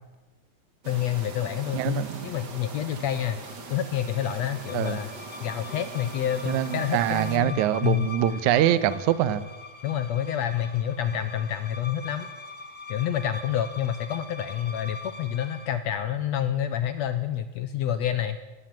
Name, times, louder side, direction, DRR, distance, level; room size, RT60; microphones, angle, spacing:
voice 1, 0.8-3.4 3.7-5.1 5.4-8.1 9.8-12.3 12.9-18.4, left 10 dB, 75° left, 11 dB, 1.6 m, -28 dB
sound 1, 0.8-7.4, right 4 dB, 35° right, 2.3 m, -41 dB
voice 2, 1.7-2.3 4.7-5.0 6.5-9.4, right 11 dB, 70° right, 15 dB, 2.1 m, -24 dB
sound 2, 3.1-15.8, left 3 dB, 60° left, 0.4 m, -43 dB
19.0 x 17.0 x 9.0 m, 1.2 s
omnidirectional pair, 4.1 m